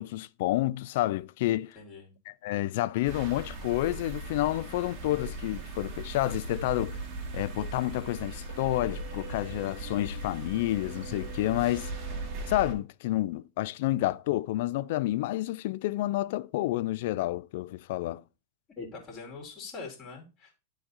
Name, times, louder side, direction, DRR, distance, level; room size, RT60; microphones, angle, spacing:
voice 1, 0.0-1.8 2.3-7.0 7.3-11.9 12.5-18.2, left 16 dB, 50° left, 0.4 m, -29 dB
voice 2, 1.7-2.1 18.8-20.6, left 4 dB, 30° left, 2.9 m, -43 dB
sound 1, 3.0-12.7, right 3 dB, 35° right, 2.1 m, -39 dB
Motor vehicle (road), 6.2-11.6, left 1 dB, 90° left, 0.6 m, -44 dB
11.0 x 4.1 x 4.1 m
figure-of-eight pair, 90°, 0 cm